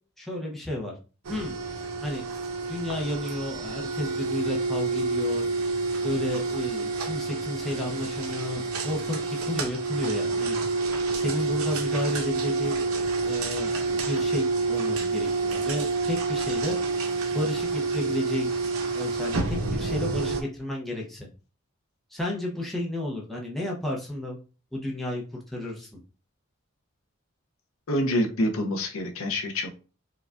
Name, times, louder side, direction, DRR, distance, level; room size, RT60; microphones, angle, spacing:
voice 1, 0.2-0.9 1.3-1.5 2.0-2.2 2.7-5.5 6.0-10.6 11.1-12.8 13.2-16.8 17.3-18.5 18.9-21.3 22.1-24.4 24.7-26.0, left 1 dB, ahead, -3 dB, 0.6 m, -32 dB
sound 1, 1.2-20.4, right 3 dB, 85° right, 0.7 m, -28 dB
voice 2, 27.9-29.8, left 1 dB, 80° left, 3 dB, 0.6 m, -27 dB
4.6 x 2.3 x 2.4 m, 0.35 s
head